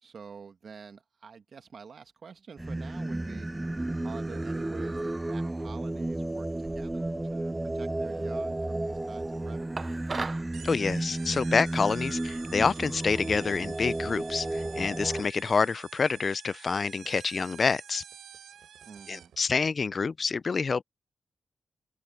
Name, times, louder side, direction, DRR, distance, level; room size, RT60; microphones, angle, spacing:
voice 1, 0.0-3.5 4.0-9.8 18.8-19.3, right 6 dB, 65° right, 2.0 m, -47 dB
Singing, 2.6-15.2, right 2 dB, 20° right, 0.5 m, -33 dB
sound 1, 9.8-10.5, right 4 dB, 45° right, 0.8 m, -34 dB
sound 2, 10.5-19.4, right 9 dB, 90° right, 3.9 m, -49 dB
voice 2, 10.6-18.0 19.1-20.8, left 5 dB, 50° left, 0.5 m, -27 dB
open air
cardioid pair, 60°, 0 cm